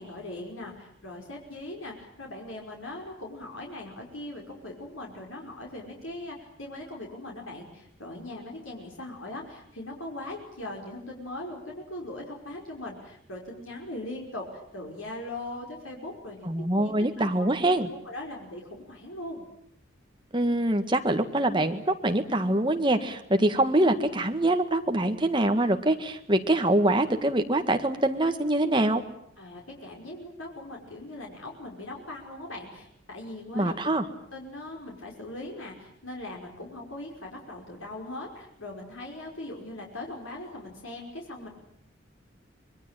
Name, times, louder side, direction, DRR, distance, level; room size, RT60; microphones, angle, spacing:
voice 1, 0.0-14.5 14.7-17.5 18.0-19.5 29.4-33.7 34.3-41.5, left 1 dB, 85° left, -1 dB, 5.5 m, -40 dB
voice 2, 16.4-17.9 20.3-29.0 33.5-34.0, right 1 dB, 25° right, 6 dB, 1.7 m, -24 dB
25.5 x 22.0 x 9.1 m, 0.71 s
head